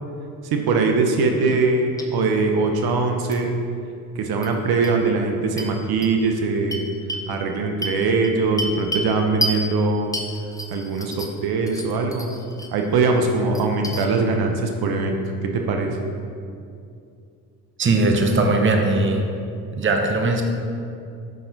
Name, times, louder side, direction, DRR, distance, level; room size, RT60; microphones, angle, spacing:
voice 1, 0.4-3.5 4.1-6.9 7.3-10.1 10.7-12.3 12.7-15.2 15.4-15.9, right 3 dB, 60° right, 3 dB, 0.8 m, -21 dB
sound 1, 1.4-1.7 2.0-2.1 3.3-3.4 4.4-4.5 4.8-4.9 5.6-5.7 6.0-6.1 6.7-7.3 7.8-9.1 9.4-9.6 10.1-11.4 11.7-12.7 13.1-14.1, equal, 10° left, 0.7 m, -30 dB
voice 2, 17.8-19.2 19.7-20.4, right 2 dB, 30° right, 3 dB, 0.8 m, -19 dB
6.5 x 5.6 x 3.9 m, 2.4 s
supercardioid pair, 70°, 43 cm